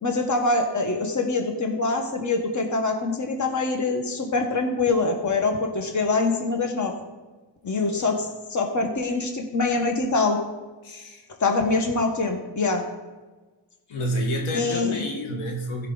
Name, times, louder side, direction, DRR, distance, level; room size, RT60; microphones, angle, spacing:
voice 1, 0.0-6.9 7.6-10.4 11.4-12.8 14.5-15.0, left 3 dB, 40° left, 4 dB, 1.5 m, -24 dB
voice 2, 7.6-8.1 10.8-11.3 13.9-15.9, equal, 85° left, 1 dB, 1.8 m, -29 dB
15.5 x 5.6 x 4.0 m, 1.3 s
cardioid pair, 90°, 47 cm